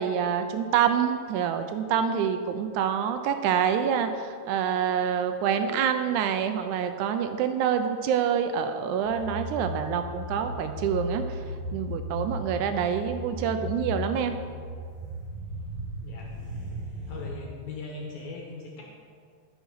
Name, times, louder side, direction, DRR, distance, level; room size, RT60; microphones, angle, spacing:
voice 1, 0.0-11.4 11.7-14.4, right 8 dB, 85° right, 8 dB, 2.1 m, -26 dB
sound 1, 9.0-17.3, equal, 20° right, 2.3 m, -36 dB
voice 2, 16.0-16.3 17.1-18.8, left 3 dB, 70° left, -1 dB, 2.5 m, -39 dB
13.0 x 5.8 x 5.6 m, 2.1 s
omnidirectional pair, 3.5 m